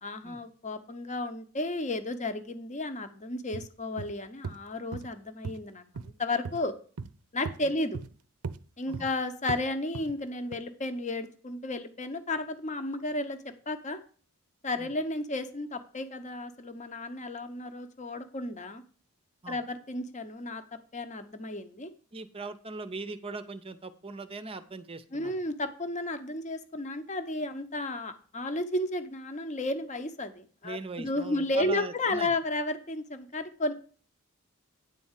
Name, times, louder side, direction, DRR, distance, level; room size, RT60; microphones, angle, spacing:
voice 1, 0.0-6.7 7.3-8.0 8.8-14.0 14.6-18.8 19.5-20.6 20.9-21.9 25.1-33.7, left 2 dB, 35° left, 8 dB, 0.9 m, -33 dB
sound 1, 3.5-3.7 4.0-4.1 4.4-4.6 4.9-5.1 5.4-5.6 6.0-6.1 6.5-6.6 7.0-7.1 7.5-7.6 7.9-8.1 8.4-8.6 8.9-9.1 9.5-9.6 9.9-10.1 10.5-10.6, right 5 dB, 80° right, 0.5 m, -37 dB
voice 2, 22.1-25.3 30.6-32.3, right 3 dB, 25° right, 11 dB, 0.6 m, -40 dB
9.8 x 4.2 x 7.3 m, 0.40 s
head